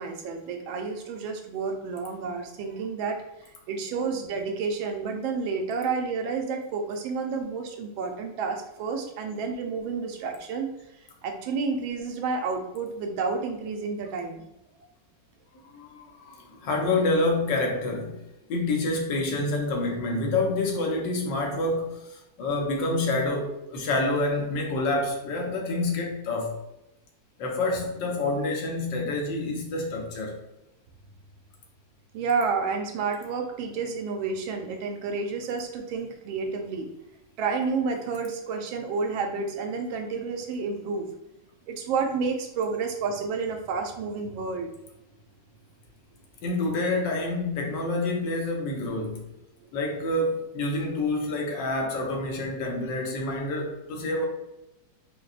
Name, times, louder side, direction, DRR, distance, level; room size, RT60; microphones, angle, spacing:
voice 1, 0.0-3.2 3.7-10.7 11.2-14.4 32.1-36.9 37.4-41.1 41.7-44.7, right 4 dB, 90° right, 1.4 m, -30 dB
voice 2, 15.7-18.2 18.5-26.6 27.4-30.4 46.4-49.3 49.7-54.3, left 2 dB, 75° left, 1.4 m, -27 dB
5.3 x 2.2 x 2.4 m
omnidirectional pair, 2.1 m